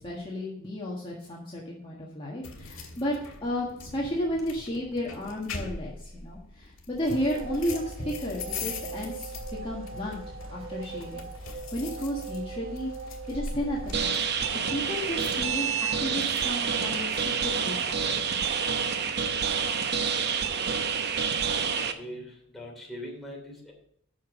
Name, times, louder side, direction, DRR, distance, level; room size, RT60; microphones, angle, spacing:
voice 1, 0.0-3.2 3.4-9.3 9.6-10.2 10.5-12.9 13.3-14.2 14.7-18.2, equal, 25° left, -4 dB, 1.6 m, -33 dB
sound 1, 2.4-16.5, left 4 dB, 75° left, 1.8 m, -42 dB
sound 2, 7.1-13.9, right 3 dB, 75° right, 1.1 m, -40 dB
sound 3, 13.9-21.9, right 6 dB, 55° right, 0.8 m, -28 dB
voice 2, 21.5-23.7, equal, ahead, -3 dB, 2.9 m, -42 dB
8.5 x 6.1 x 6.1 m, 0.68 s
head